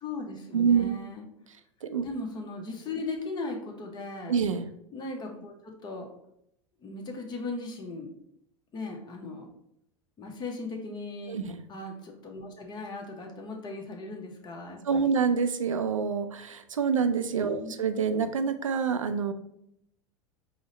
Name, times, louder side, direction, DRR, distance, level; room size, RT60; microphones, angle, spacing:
voice 1, 0.0-1.2 2.0-4.4 4.9-6.1 6.8-8.1 8.7-9.5 10.2-11.4 11.7-15.1 17.5-17.8, left 3 dB, 25° left, 1 dB, 0.8 m, -38 dB
voice 2, 0.5-0.9 1.8-2.1 4.3-4.7 11.3-11.6 14.8-19.3, right 6 dB, 85° right, 9 dB, 0.4 m, -26 dB
4.9 x 2.1 x 3.9 m, 0.74 s
figure-of-eight pair, 80°, 16 cm